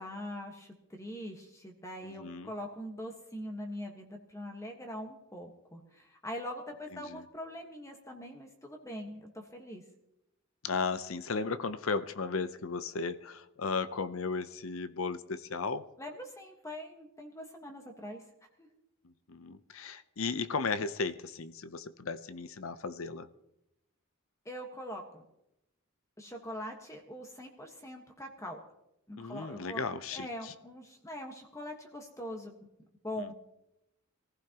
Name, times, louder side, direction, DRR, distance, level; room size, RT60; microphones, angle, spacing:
voice 1, 0.0-9.8 16.0-18.2 18.6-18.7 24.4-25.2 26.2-28.6 29.1-32.5 33.0-33.3, equal, 15° left, 2 dB, 1.4 m, -43 dB
voice 2, 2.0-2.5 6.9-7.2 10.6-15.8 19.3-23.3 29.2-30.5, left 4 dB, 70° left, 13 dB, 0.7 m, -35 dB
24.0 x 15.0 x 3.0 m, 0.86 s
head